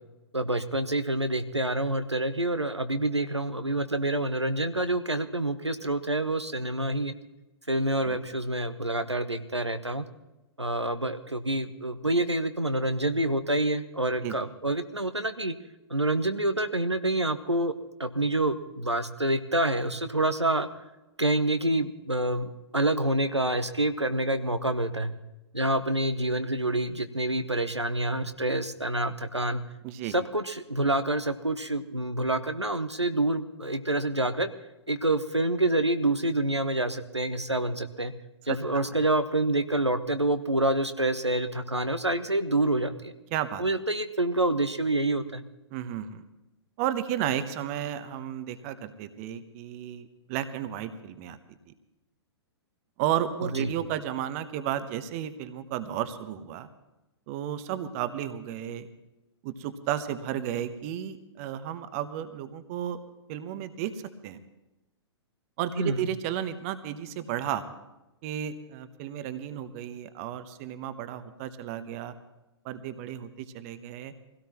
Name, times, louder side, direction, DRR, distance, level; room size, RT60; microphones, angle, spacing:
voice 1, 0.3-7.1 7.7-10.0 10.6-15.5 15.9-17.7 18.0-20.7 21.2-25.1 25.5-29.6 30.1-34.5 34.9-38.1 38.5-43.1 43.6-45.4 53.6-53.7 65.8-66.0, right 1 dB, 90° right, 9 dB, 0.9 m, -27 dB
voice 2, 43.3-43.6 45.7-46.2 46.8-51.4 53.0-56.7 57.3-58.9 59.4-63.0 63.3-63.9 64.2-64.4 65.6-67.6 68.2-72.1 72.6-74.1, right 11 dB, 30° right, 12 dB, 0.9 m, -33 dB
23.0 x 16.5 x 3.0 m, 1.0 s
figure-of-eight pair, 115°, 14 cm